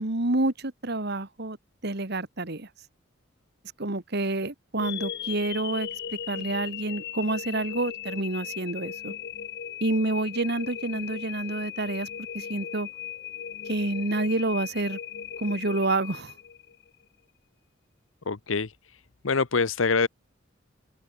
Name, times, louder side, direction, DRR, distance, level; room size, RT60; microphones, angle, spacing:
voice 1, 0.0-1.6 1.8-2.7 3.8-5.9 6.3-9.1 9.8-12.1 12.3-12.9 13.7-15.0 15.4-16.3, right 2 dB, 55° right, 2.0 m, -28 dB
sound 1, 4.8-16.9, left 9 dB, 60° left, 0.8 m, -38 dB
voice 2, 18.3-20.1, left 4 dB, 85° left, 1.0 m, -26 dB
head